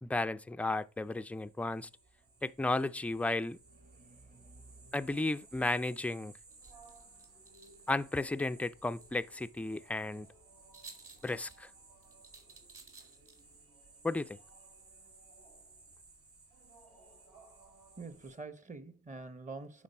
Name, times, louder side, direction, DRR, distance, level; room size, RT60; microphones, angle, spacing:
voice 1, 0.0-1.9 2.4-3.6 4.9-6.3 7.9-10.3 11.2-11.7 14.0-14.4, left 2 dB, 5° left, 0.3 m, -34 dB
sound 1, 0.7-18.4, right 3 dB, 75° right, 4.5 m, -59 dB
voice 2, 3.9-4.9 18.0-19.8, right 3 dB, 25° right, 1.0 m, -47 dB
sound 2, 6.5-13.7, right 4 dB, 45° right, 2.3 m, -58 dB
9.6 x 3.9 x 5.4 m
cardioid pair, 90°, 30 cm